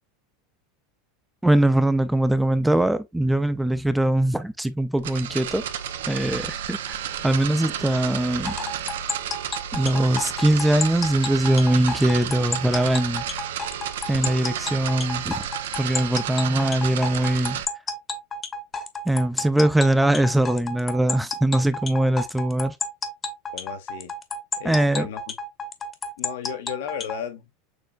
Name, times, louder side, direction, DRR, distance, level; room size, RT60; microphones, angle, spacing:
voice 1, 1.4-5.7 6.1-7.0 7.2-8.6 9.7-13.2 14.1-15.4 15.8-17.6 19.1-22.8 24.6-25.1, right 1 dB, 5° right, 0.5 m, -21 dB
sound 1, 5.0-17.7, right 9 dB, 85° right, 0.7 m, -32 dB
sound 2, 8.4-27.2, left 3 dB, 25° left, 1.0 m, -31 dB
voice 2, 23.5-24.1 24.6-25.3 26.2-27.5, left 9 dB, 75° left, 1.2 m, -34 dB
6.7 x 3.1 x 2.4 m
supercardioid pair, 115°, 0 cm